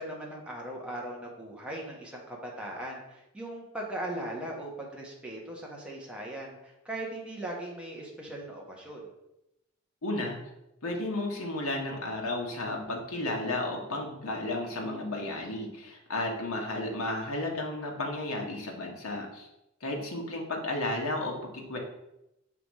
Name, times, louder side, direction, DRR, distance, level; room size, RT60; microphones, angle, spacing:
voice 1, 0.0-9.1, right 1 dB, 5° right, -3 dB, 1.2 m, -39 dB
voice 2, 10.0-10.4 10.8-19.5 19.8-21.8, left 2 dB, 85° left, 0 dB, 1.2 m, -33 dB
5.9 x 3.6 x 4.7 m, 0.87 s
head